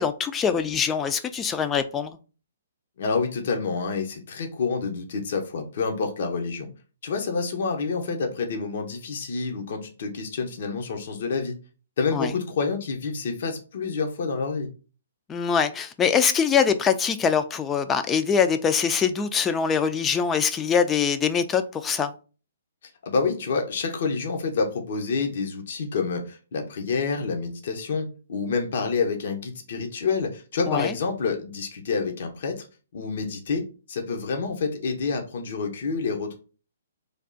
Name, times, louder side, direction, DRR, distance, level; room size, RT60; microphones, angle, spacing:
voice 1, 0.0-2.1 12.1-12.3 15.3-22.1 30.7-30.9, left 7 dB, 15° left, 0.4 m, -23 dB
voice 2, 3.0-6.7 7.0-11.6 12.0-14.7 23.0-32.7 32.9-36.3, left 4 dB, 60° left, 0.8 m, -28 dB
3.4 x 2.4 x 3.8 m
hypercardioid pair, 140°, 0 cm